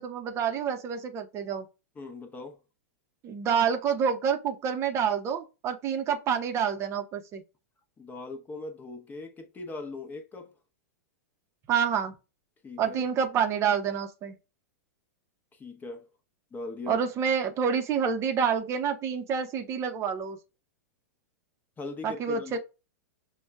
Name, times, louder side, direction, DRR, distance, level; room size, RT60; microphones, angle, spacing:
voice 1, 0.0-1.7 3.2-7.4 11.7-12.1 12.8-14.4 16.9-20.4 22.0-22.6, right 7 dB, 30° right, 0.7 m, -28 dB
voice 2, 2.0-2.6 8.0-10.5 12.6-13.1 15.5-16.1 16.5-17.0 21.8-22.6, left 3 dB, 20° left, 0.8 m, -40 dB
6.1 x 2.3 x 2.3 m
hypercardioid pair, 105°, 9 cm